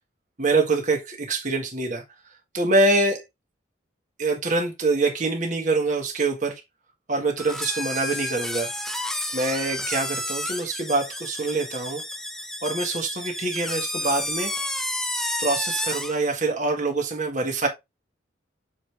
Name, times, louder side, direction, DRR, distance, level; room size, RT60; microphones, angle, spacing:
voice 1, 0.4-2.0 2.5-3.2 4.2-6.6 7.1-8.7 9.3-12.0 12.6-14.5 15.4-17.7, right 3 dB, 40° right, 1.7 m, -25 dB
sound 1, 7.4-16.2, left 1 dB, ahead, 0.6 m, -31 dB
6.4 x 4.9 x 3.4 m
head